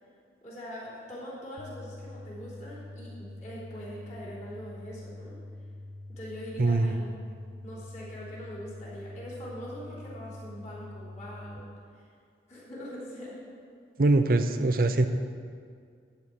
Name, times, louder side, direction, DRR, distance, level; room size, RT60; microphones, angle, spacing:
voice 1, 0.4-5.4 6.1-7.1 7.6-11.7 11.9-12.1 12.5-13.4, equal, 35° left, -8 dB, 3.3 m, -42 dB
sound 1, 1.6-11.6, left 2 dB, 90° left, 0.7 m, -44 dB
voice 2, 6.6-7.0 14.0-15.1, right 2 dB, 50° right, 9 dB, 0.6 m, -23 dB
12.5 x 4.6 x 8.3 m, 2.2 s
head